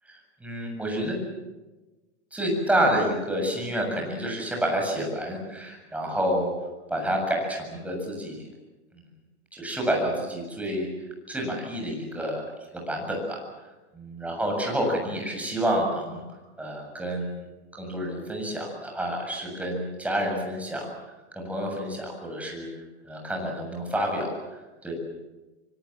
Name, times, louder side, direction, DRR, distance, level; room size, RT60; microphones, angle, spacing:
voice 1, 0.1-1.2 2.3-6.5 6.9-8.5 8.9-9.0 9.5-10.9 11.3-12.4 12.7-13.4 13.9-16.2 16.6-17.4 17.7-20.9 21.3-22.7 23.0-24.9, equal, 5° right, 0 dB, 7.5 m, -29 dB
25.5 x 24.5 x 7.4 m, 1.1 s
supercardioid pair, 150°, 35 cm